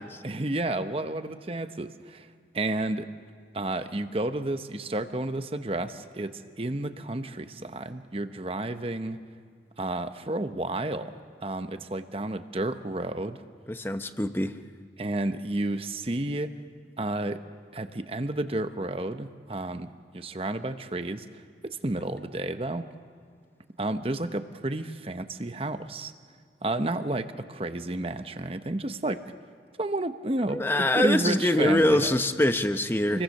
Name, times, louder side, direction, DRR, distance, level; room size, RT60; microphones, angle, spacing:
voice 1, 0.2-2.3 2.5-3.1 3.5-9.2 9.8-11.1 11.4-13.4 15.0-16.5 17.0-17.4 17.7-21.2 21.6-22.8 23.8-26.1 26.6-29.2 29.8-32.1 33.1-33.2, right 2 dB, 35° right, 9 dB, 0.9 m, -31 dB
voice 2, 13.7-14.5 30.5-33.2, left 1 dB, 15° left, 8 dB, 0.9 m, -24 dB
28.5 x 22.0 x 6.6 m, 2.1 s
head